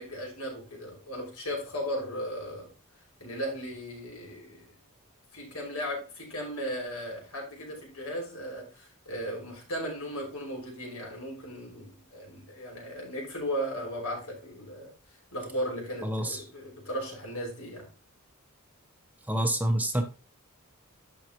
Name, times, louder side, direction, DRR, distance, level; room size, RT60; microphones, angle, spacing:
voice 1, 0.0-2.7 3.2-4.7 5.3-14.9 15.3-17.9, equal, 80° left, 5.7 m, -36 dB
voice 2, 16.0-16.4 19.3-20.0, right 1 dB, 5° right, 0.9 m, -27 dB
11.5 x 7.2 x 3.0 m
head